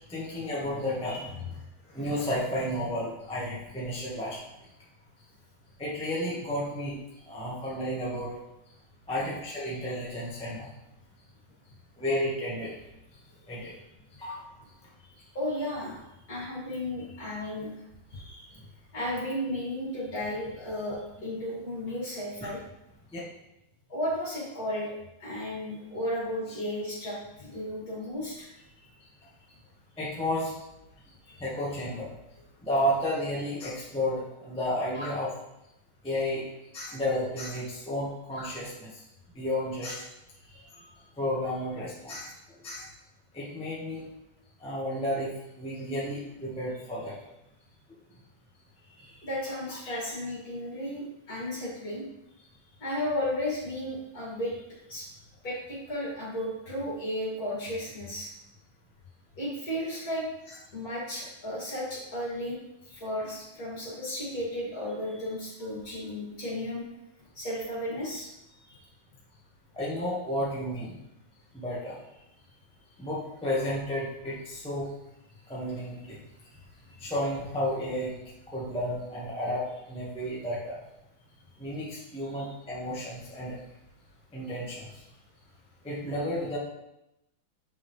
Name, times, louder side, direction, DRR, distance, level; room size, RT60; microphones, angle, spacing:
voice 1, 0.1-1.5 1.9-4.4 5.8-7.0 7.3-8.3 9.1-10.7 12.0-12.7 13.5-13.7 14.2-14.4 22.4-22.5 23.1-23.2 30.0-30.5 31.4-32.1 32.6-35.3 36.0-36.4 36.7-38.9 39.3-40.0 41.2-42.3 42.6-42.9 43.3-44.0 44.6-45.3 45.6-47.1 49.0-49.1 49.8-50.0 69.7-71.0 71.5-72.0 73.0-74.9 75.5-76.2 77.0-78.1 78.5-79.6 79.9-80.8 81.6-83.6 84.3-84.9 85.8-86.6, left 1 dB, 5° left, -7 dB, 1.4 m, -32 dB
voice 2, 15.3-16.0 16.3-17.7 18.1-18.5 18.9-22.6 23.9-24.9 25.2-28.5 28.8-28.9 31.3-31.4 40.5-40.7 49.2-52.0 52.8-54.5 54.9-55.0 55.4-58.3 59.4-60.3 60.7-62.6 62.9-66.8 67.3-68.3 68.6-68.8 82.4-82.5, left 1 dB, 45° left, -6 dB, 2.9 m, -34 dB
7.3 x 5.6 x 3.3 m, 0.88 s
omnidirectional pair, 2.2 m